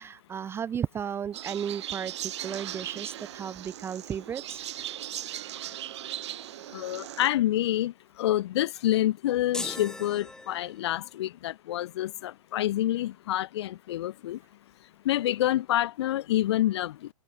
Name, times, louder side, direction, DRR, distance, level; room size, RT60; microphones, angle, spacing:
voice 1, 0.0-4.6, right 8 dB, 15° right, 0.6 m, -34 dB
sound 1, 1.3-7.3, right 12 dB, 55° right, 6.4 m, -38 dB
voice 2, 6.7-14.4 15.0-17.1, left 14 dB, 55° left, 1.6 m, -27 dB
sound 2, 9.5-11.1, left 2 dB, 5° left, 1.5 m, -39 dB
hypercardioid pair, 120°, 17 cm